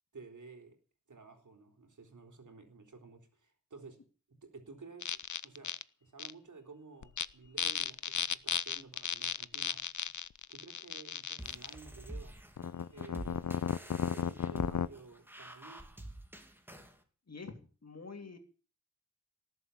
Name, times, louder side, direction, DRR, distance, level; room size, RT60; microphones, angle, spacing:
voice 1, 0.1-0.8 1.1-4.0 4.3-5.7 6.0-9.8 10.5-12.4 12.9-13.6 14.0-15.9, right 4 dB, 85° right, 5 dB, 3.9 m, -53 dB
sound 1, 5.0-5.8 6.2-6.3 7.0-7.2 7.6-11.7 12.6-14.9, left 8 dB, 80° left, 0.7 m, -35 dB
sound 2, 11.4-17.0, right 1 dB, 5° right, 2.7 m, -48 dB
voice 2, 17.8-18.4, left 4 dB, 60° left, 5 dB, 3.1 m, -46 dB
18.5 x 7.9 x 8.5 m, 0.39 s
wide cardioid pair, 85°, 30 cm